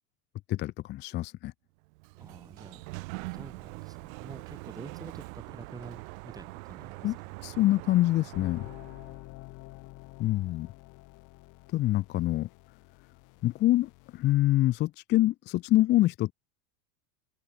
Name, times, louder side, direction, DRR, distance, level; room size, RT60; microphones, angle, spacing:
voice 1, 0.5-1.5 7.0-8.7 10.2-10.7 11.7-12.5 13.4-16.3, left 16 dB, 25° left, 0.5 m, -26 dB
Sliding door, 1.8-9.2, right 28 dB, 70° right, 2.4 m, -43 dB
voice 2, 2.2-2.9 3.3-7.3, right 3 dB, 10° right, 4.3 m, -48 dB
sound 1, 8.3-14.3, left 23 dB, 45° left, 1.4 m, -48 dB
open air
supercardioid pair, 150°, 42 cm